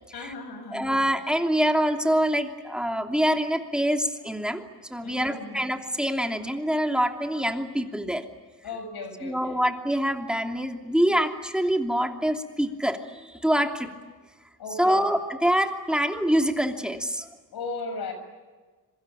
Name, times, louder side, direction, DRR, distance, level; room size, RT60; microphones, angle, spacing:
voice 1, 0.1-1.0 5.0-5.6 8.6-9.6 14.6-15.0 17.5-18.1, left 3 dB, 70° left, 8 dB, 6.8 m, -36 dB
voice 2, 0.7-4.6 4.9-8.2 9.2-13.9 14.8-17.3, equal, ahead, 4 dB, 2.9 m, -25 dB
26.5 x 24.5 x 9.0 m, 1.3 s
cardioid pair, 100°, 39 cm